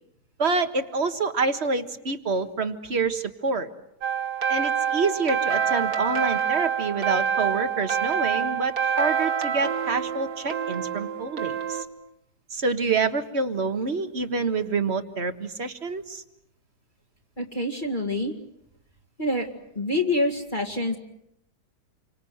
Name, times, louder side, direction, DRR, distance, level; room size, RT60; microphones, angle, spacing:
voice 1, 0.4-3.7 4.5-11.9 12.5-16.2, right 4 dB, 40° right, 9 dB, 1.7 m, -27 dB
Bright Rhodes Melody, 4.0-11.8, right 7 dB, 60° right, 2.3 m, -26 dB
voice 2, 17.4-18.3 19.2-19.5 19.8-21.0, left 1 dB, 30° left, 1 dB, 2.4 m, -26 dB
28.5 x 25.0 x 8.0 m, 0.79 s
omnidirectional pair, 1.8 m